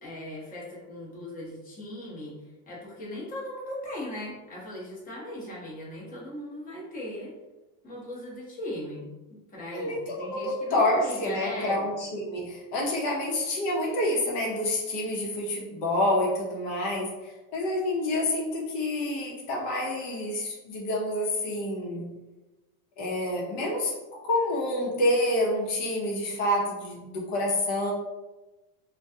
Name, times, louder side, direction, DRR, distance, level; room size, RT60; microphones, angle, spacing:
voice 1, 0.0-2.4 2.7-7.3 7.8-11.8, left 1 dB, 20° left, -6 dB, 0.8 m, -38 dB
voice 2, 9.7-22.1 23.0-23.9 24.2-27.9, left 1 dB, 60° left, -2 dB, 0.8 m, -28 dB
2.2 x 2.2 x 2.6 m, 1.1 s
supercardioid pair, 120°, 49 cm